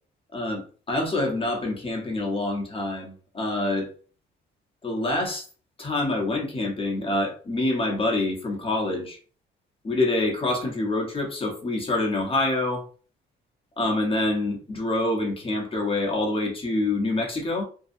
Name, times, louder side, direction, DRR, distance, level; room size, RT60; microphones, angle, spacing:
voice 1, 0.3-3.9 4.8-5.4 5.8-9.2 9.8-12.8 13.8-17.6, left 2 dB, 25° left, 0 dB, 0.9 m, -26 dB
2.7 x 2.2 x 2.5 m, 0.39 s
cardioid pair, 90°, 20 cm